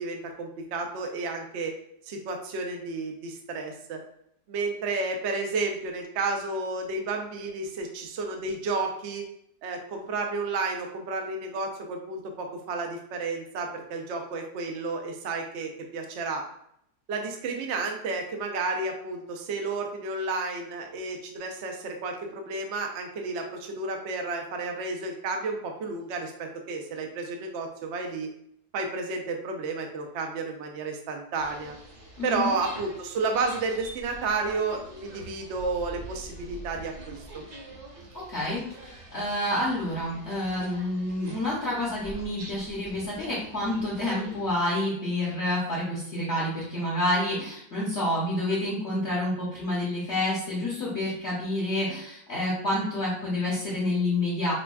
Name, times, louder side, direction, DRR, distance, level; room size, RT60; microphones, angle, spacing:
voice 1, 0.0-1.7 2.0-4.0 4.5-9.2 9.6-16.4 17.1-28.3 28.7-31.8 32.2-37.4, right 3 dB, 80° right, 3 dB, 0.6 m, -31 dB
sound 1, 31.4-44.6, right 2 dB, 60° right, 1.4 m, -45 dB
voice 2, 32.2-32.5 38.1-54.5, left 1 dB, 50° left, -6 dB, 0.9 m, -28 dB
5.0 x 2.2 x 2.3 m, 0.72 s
omnidirectional pair, 1.9 m